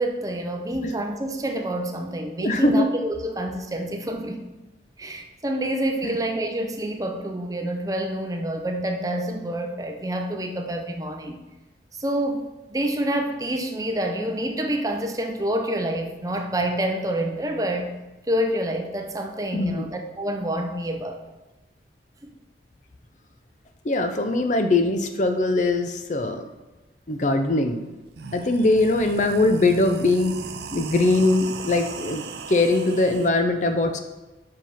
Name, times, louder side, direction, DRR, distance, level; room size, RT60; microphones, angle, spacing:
voice 1, 0.0-4.4 5.0-11.4 12.0-17.9 18.3-21.2 22.2-22.3, right 1 dB, 20° right, 4 dB, 0.6 m, -27 dB
voice 2, 2.4-2.9 6.0-6.2 19.5-19.9 23.8-26.4 27.1-27.9 28.3-30.3 30.7-34.0, left 2 dB, 40° left, 7 dB, 0.5 m, -21 dB
sound 1, 27.6-27.7 28.0-33.3, right 5 dB, 65° right, 0.5 m, -38 dB
5.7 x 5.2 x 5.6 m, 1.1 s
head